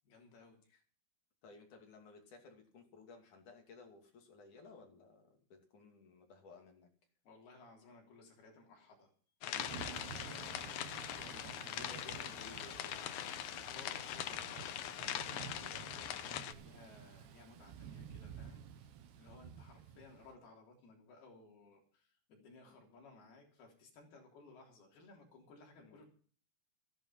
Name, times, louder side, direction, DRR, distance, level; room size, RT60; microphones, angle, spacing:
voice 1, 0.1-0.6 7.3-9.1 9.4-10.5 10.8-12.3 13.7-15.2 15.6-26.1, left 3 dB, 70° left, 1 dB, 5.3 m, -59 dB
voice 2, 1.4-6.9 10.0-10.4 11.7-13.7 15.1-15.4 25.8-26.0, left 4 dB, 50° left, 3 dB, 3.9 m, -57 dB
sound 1, 9.4-16.5, left 11 dB, 90° left, 1.6 m, -42 dB
Thunder / Rain, 9.6-20.3, right 8 dB, 85° right, 3.3 m, -52 dB
14.5 x 11.0 x 5.7 m, 0.43 s
omnidirectional pair, 4.6 m